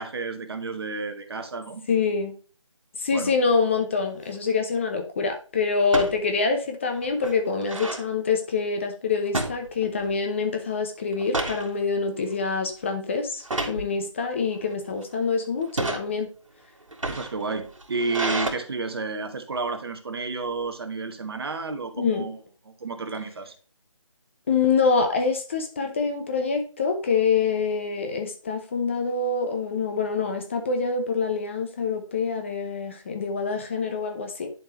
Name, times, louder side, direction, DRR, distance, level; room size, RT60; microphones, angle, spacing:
voice 1, 0.0-1.8 3.1-3.3 14.2-14.3 17.1-22.4 22.8-23.5, right 3 dB, 50° right, 7 dB, 1.2 m, -31 dB
voice 2, 1.9-2.3 3.0-16.3 22.0-22.3 24.5-34.5, left 5 dB, 25° left, 5 dB, 0.7 m, -25 dB
sound 1, 4.1-4.4 5.8-6.2 6.7-6.8 7.0-8.1 9.3-10.2 10.5-10.7 11.1-11.7 12.2-12.5 13.4-13.8 14.6-15.0 15.6-16.0 16.8-18.5, right 2 dB, 75° right, 2.1 m, -30 dB
10.5 x 4.4 x 2.9 m, 0.38 s
figure-of-eight pair, 160°, 17 cm